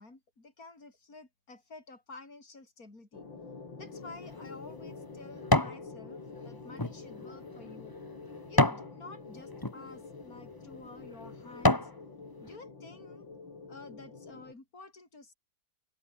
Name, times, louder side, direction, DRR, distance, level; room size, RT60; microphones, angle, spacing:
voice 1, 0.0-3.3 3.8-8.0 8.5-11.9 12.4-13.3 13.7-15.3, left 3 dB, 45° left, 6.3 m, -51 dB
sound 1, 3.1-14.5, left 4 dB, 70° left, 4.8 m, -47 dB
sound 2, 4.0-5.8 6.3-8.9 9.5-9.8 10.4-10.6 11.1-12.0 12.5-12.6, left 2 dB, 10° left, 1.7 m, -29 dB
omnidirectional pair, 2.1 m